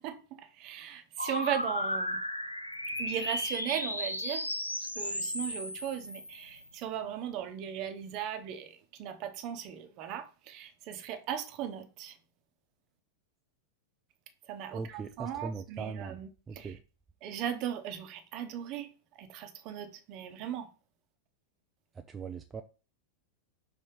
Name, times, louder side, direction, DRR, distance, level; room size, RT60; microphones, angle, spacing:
voice 1, 0.0-2.2 3.0-4.5 4.8-12.2 14.5-16.8 17.2-18.9 19.1-20.7, right 10 dB, 40° right, 1.1 m, -38 dB
sound 1, 1.2-6.7, left 1 dB, 85° left, 0.7 m, -35 dB
voice 2, 14.7-16.2 16.5-16.8 22.1-22.6, right 5 dB, 20° right, 0.5 m, -39 dB
5.7 x 4.0 x 5.1 m
figure-of-eight pair, 90°, 0 cm